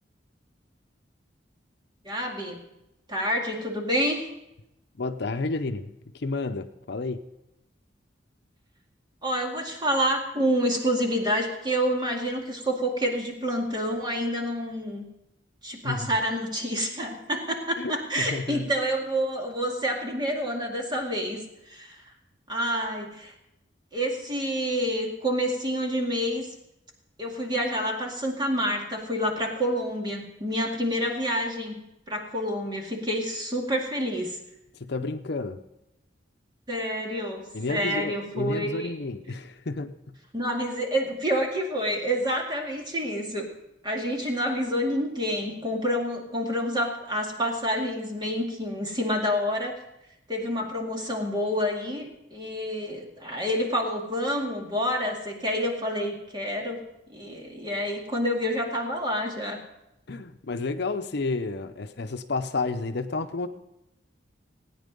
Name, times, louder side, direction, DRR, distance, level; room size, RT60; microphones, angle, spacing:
voice 1, 2.0-2.6 3.1-4.3 9.2-15.1 15.6-22.0 22.5-23.3 23.9-26.5 27.2-31.8 32.1-34.4 36.7-38.9 40.3-43.5 43.8-49.8 50.3-59.6, equal, 25° right, 1 dB, 2.2 m, -28 dB
voice 2, 5.0-7.2 15.8-16.1 17.8-18.7 34.7-35.6 37.5-40.2 60.1-63.5, left 3 dB, 65° left, 8 dB, 0.7 m, -31 dB
17.0 x 9.3 x 5.3 m, 0.89 s
head